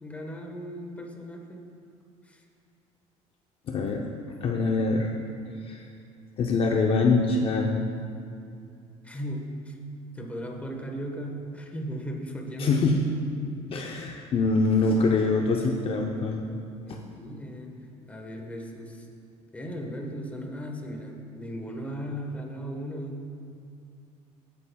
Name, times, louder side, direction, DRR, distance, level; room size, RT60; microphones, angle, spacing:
voice 1, 0.0-1.6 2.2-2.4 9.0-9.8 10.1-12.8 13.4-13.5 13.7-13.9 16.8-17.8 18.1-19.1 19.5-23.3, equal, 10° left, 2 dB, 1.2 m, -37 dB
voice 2, 3.7-4.0 4.4-5.1 5.7-5.8 6.4-7.9 12.6-13.0 13.7-16.5 16.9-17.0, left 3 dB, 45° left, 1 dB, 0.7 m, -24 dB
16.0 x 8.4 x 2.3 m, 2.4 s
cardioid pair, 125°, 13 cm